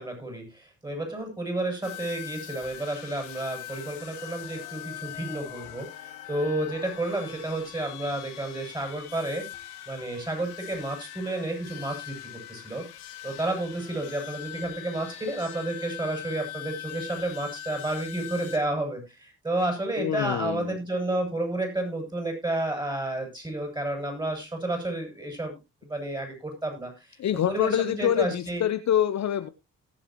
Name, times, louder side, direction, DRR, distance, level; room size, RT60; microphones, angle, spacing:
voice 1, 0.0-12.8 13.2-25.5 25.8-27.2 27.5-28.6, right 1 dB, 10° right, 2 dB, 7.4 m, -31 dB
sound 1, 1.8-18.6, left 12 dB, 80° left, 1.9 m, -42 dB
voice 2, 20.0-20.8 27.2-29.5, left 10 dB, 50° left, 12 dB, 0.9 m, -26 dB
18.5 x 7.5 x 3.0 m, 0.25 s
hypercardioid pair, 50°, 36 cm